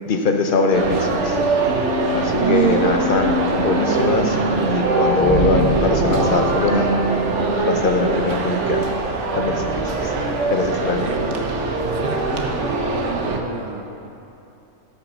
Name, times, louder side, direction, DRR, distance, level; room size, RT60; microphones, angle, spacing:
voice 1, 0.1-1.4 2.1-6.9 7.6-8.9 9.3-10.1 10.5-11.1, left 3 dB, 45° left, 4 dB, 0.8 m, -21 dB
sound 1, 0.7-13.4, right 3 dB, 55° right, 1.2 m, -22 dB
sound 2, 5.2-7.7, right 1 dB, 30° right, 0.6 m, -25 dB
voice 2, 11.0-11.5 11.9-14.1, right 4 dB, 85° right, 5 dB, 1.2 m, -32 dB
12.0 x 5.9 x 6.1 m, 2.9 s
omnidirectional pair, 1.5 m